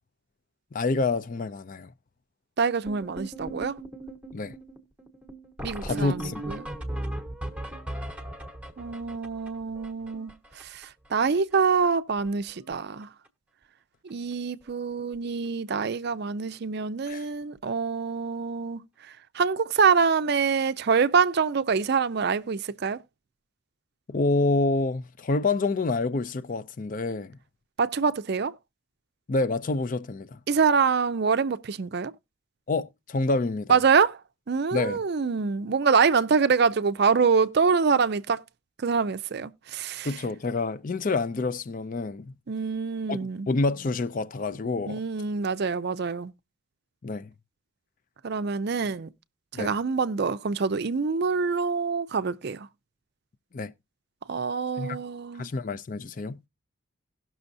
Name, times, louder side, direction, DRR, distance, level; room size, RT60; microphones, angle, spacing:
voice 1, 0.7-1.9 4.3-4.6 5.8-6.4 17.1-17.2 24.1-27.4 29.3-30.4 32.7-33.8 34.7-35.0 40.0-42.3 43.1-43.2 43.5-45.0 47.0-47.3 49.5-49.7 53.5-53.7 54.8-55.0 55.4-56.4, left 3 dB, 40° left, 0.4 m, -27 dB
voice 2, 2.6-3.8 5.6-6.7 8.8-13.1 14.0-23.0 27.8-28.5 30.5-32.1 33.7-34.2 34.5-38.4 38.8-40.1 42.5-43.5 44.9-46.3 48.2-49.1 49.6-52.7 54.3-55.5, right 5 dB, 50° right, 0.4 m, -25 dB
sound 1, 2.9-11.1 11.4-11.5 11.7-11.9 12.2-12.7 13.0-13.3 14.1-14.2 14.6-14.7 15.0-15.1 17.4-17.5 19.8-19.9, right 1 dB, 5° right, 1.0 m, -38 dB
17.5 x 6.1 x 2.6 m
head